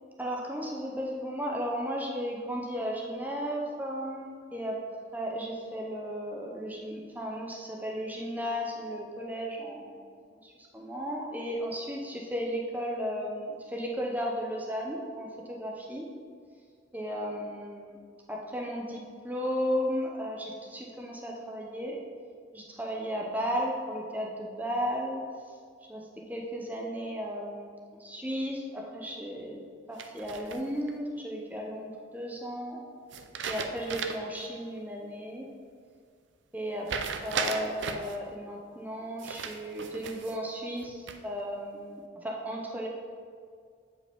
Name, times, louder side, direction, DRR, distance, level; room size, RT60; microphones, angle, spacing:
voice 1, 0.2-4.8 5.1-9.9 10.4-16.1 16.9-18.0 18.3-22.0 22.5-25.2 25.9-27.7 28.0-29.6 29.9-32.8 33.4-35.5 36.5-36.9 37.2-42.9, equal, 10° right, -1 dB, 0.7 m, -34 dB
sound 1, 30.0-30.9 33.1-34.4 34.8-34.9 36.9-38.2 39.2-40.4 40.8-41.4, right 6 dB, 65° right, 0.5 m, -36 dB
8.3 x 5.1 x 3.5 m, 2.1 s
head